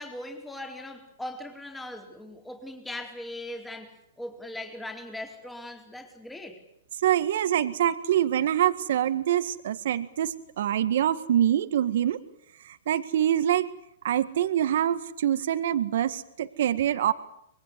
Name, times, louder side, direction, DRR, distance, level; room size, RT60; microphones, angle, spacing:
voice 1, 0.0-6.6, left 1 dB, 5° left, 3 dB, 4.2 m, -39 dB
voice 2, 7.0-12.2 12.7-13.7 14.0-17.1, right 11 dB, 65° right, 12 dB, 1.8 m, -25 dB
25.5 x 22.0 x 8.3 m, 0.77 s
hypercardioid pair, 125°, 0 cm